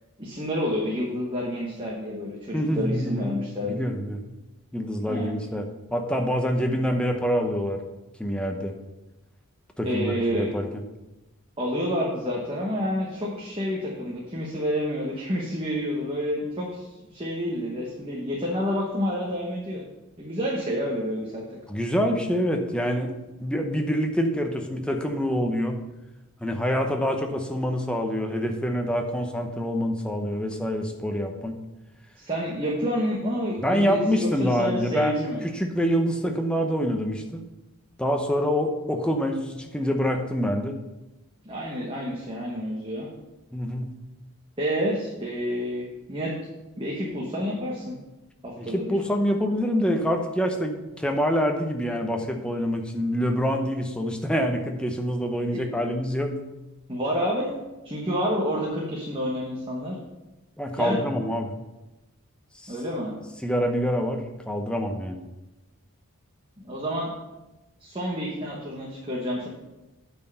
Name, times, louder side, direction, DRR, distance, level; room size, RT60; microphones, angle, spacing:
voice 1, 0.2-3.8 5.1-5.3 9.8-10.5 11.6-19.8 20.2-21.6 32.2-35.4 41.4-43.1 44.6-46.3 46.8-48.0 48.4-49.0 55.5-55.6 56.9-57.5 57.8-60.0 60.8-61.0 62.7-63.1 66.6-67.1 67.8-69.5, equal, 25° right, -3 dB, 1.1 m, -29 dB
voice 2, 2.5-4.2 4.7-5.6 5.9-7.8 8.2-8.7 9.8-10.7 21.7-23.1 23.4-25.8 26.4-31.6 33.6-37.4 38.0-40.8 43.5-43.9 48.6-56.4 60.6-61.5 62.6-62.8 63.4-65.2, equal, 5° left, 3 dB, 0.7 m, -26 dB
8.8 x 4.5 x 6.7 m, 1.0 s
head